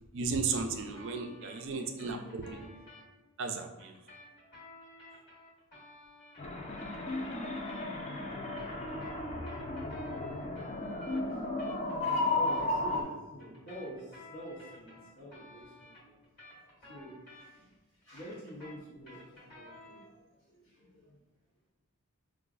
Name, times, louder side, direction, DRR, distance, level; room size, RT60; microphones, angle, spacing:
voice 1, 0.1-2.5 3.4-3.9, right 4 dB, 55° right, 4 dB, 0.4 m, -34 dB
sound 1, 0.9-3.0 3.8-8.1 8.4-12.6 13.4-17.7 18.0-20.1, left 1 dB, 45° left, 1.4 m, -54 dB
voice 2, 1.0-2.8 11.3-11.8 12.3-21.2, equal, 60° left, -8 dB, 0.8 m, -48 dB
sound 2, 6.4-13.0, left 2 dB, 30° left, 0.3 m, -34 dB
4.7 x 2.4 x 2.3 m, 1.1 s
head